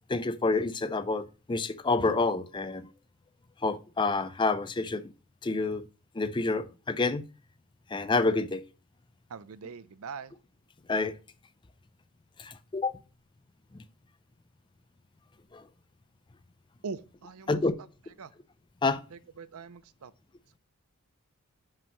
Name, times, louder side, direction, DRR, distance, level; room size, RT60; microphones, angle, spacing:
voice 1, 0.1-2.9 3.6-5.1 5.4-5.9 6.1-7.2 7.9-8.6 10.9-11.1 12.4-13.0 13.7-13.8 15.5-15.6 17.5-17.7 18.8-19.0, left 3 dB, 20° left, 0.4 m, -28 dB
voice 2, 9.3-10.3 16.8-17.6 18.2-18.3 19.1-20.1, right 5 dB, 75° right, 0.5 m, -42 dB
5.6 x 5.4 x 5.3 m
head